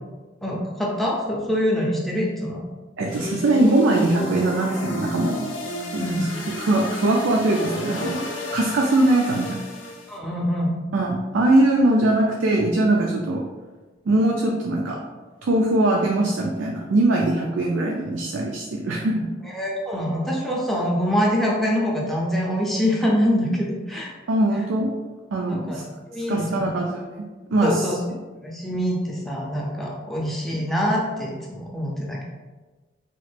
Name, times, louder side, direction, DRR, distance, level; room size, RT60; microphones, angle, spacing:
voice 1, 0.4-2.6 6.0-6.3 10.1-10.8 19.5-24.1 25.5-25.8 26.1-26.7 27.6-28.0 28.4-32.2, equal, ahead, -4 dB, 0.4 m, -24 dB
voice 2, 3.0-5.5 5.9-9.6 10.9-13.4 14.1-15.0 15.4-19.2 24.3-24.9 25.3-25.8 26.3-27.2 27.5-27.9, right 2 dB, 80° right, -1 dB, 0.4 m, -21 dB
sound 1, 3.1-10.2, left 2 dB, 85° left, 0.6 m, -33 dB
3.0 x 2.4 x 3.2 m, 1.3 s
head